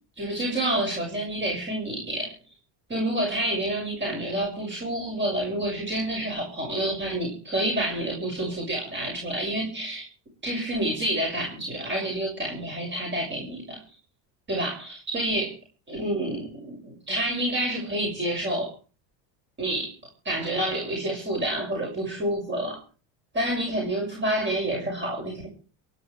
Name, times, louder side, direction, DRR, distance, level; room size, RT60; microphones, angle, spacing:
voice 1, 0.2-2.3 2.9-10.0 10.4-13.8 14.5-15.5 15.9-18.7 19.6-19.9 20.2-22.8 23.3-25.5, right 1 dB, 25° right, 0 dB, 6.3 m, -28 dB
29.0 x 11.0 x 3.4 m, 0.37 s
cardioid pair, 130°, 42 cm